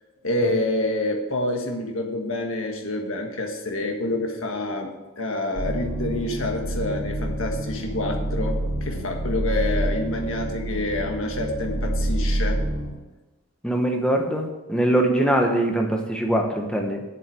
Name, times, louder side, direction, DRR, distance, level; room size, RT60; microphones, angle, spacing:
voice 1, 0.2-12.6, left 1 dB, 70° left, 2 dB, 1.6 m, -27 dB
sound 1, 5.5-12.9, right 1 dB, 80° right, 2.8 m, -27 dB
voice 2, 13.6-17.0, right 1 dB, 5° left, 2 dB, 1.2 m, -22 dB
7.8 x 7.6 x 7.6 m, 1.2 s
head